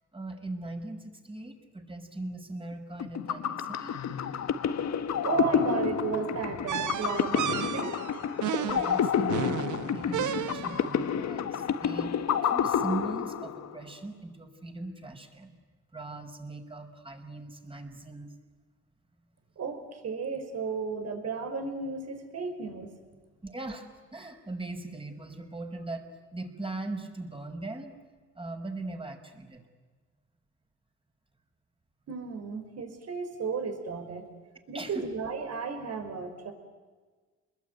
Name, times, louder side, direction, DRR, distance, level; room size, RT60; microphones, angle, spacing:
voice 1, 0.1-4.0 8.4-12.1 12.4-15.6 15.9-18.3 23.4-23.9 24.1-28.0 28.4-29.6 34.7-35.1, right 2 dB, 20° right, 5 dB, 5.2 m, -39 dB
sound 1, 3.0-13.8, left 8 dB, 60° left, 1.7 m, -29 dB
voice 2, 5.1-8.0 19.6-22.9 32.1-34.3 34.7-36.5, right 5 dB, 55° right, 7 dB, 5.6 m, -34 dB
sound 2, 6.7-11.0, right 10 dB, 75° right, 1.6 m, -33 dB
28.5 x 21.5 x 9.3 m, 1.4 s
cardioid pair, 90°, 30 cm